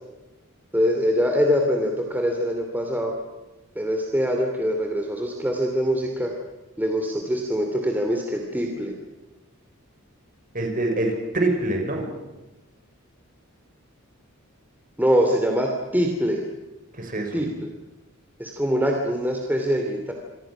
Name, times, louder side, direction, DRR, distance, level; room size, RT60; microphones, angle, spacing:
voice 1, 0.7-3.1 3.7-6.3 6.8-8.9 15.0-16.4 17.3-17.5 18.4-20.1, equal, 10° right, 2 dB, 2.8 m, -23 dB
voice 2, 10.5-12.1 16.9-17.5, right 2 dB, 40° right, 3 dB, 6.0 m, -25 dB
27.5 x 24.5 x 6.2 m, 1.1 s
head